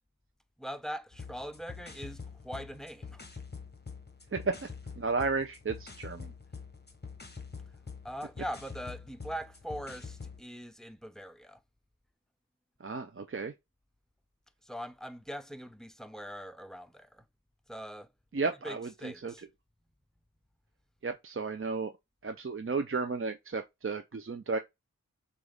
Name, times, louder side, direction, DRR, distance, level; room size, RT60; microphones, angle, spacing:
voice 1, 0.6-3.2 8.0-11.6 14.6-17.2 17.7-18.1 18.6-19.4, equal, ahead, 0.6 m, -42 dB
sound 1, 1.1-10.4, left 5 dB, 30° left, 1.0 m, -46 dB
voice 2, 4.3-4.7 5.0-6.3 12.8-13.5 18.3-19.3 21.0-21.9 22.2-24.6, right 4 dB, 40° right, 0.6 m, -33 dB
6.1 x 2.5 x 3.4 m
wide cardioid pair, 55°, 35 cm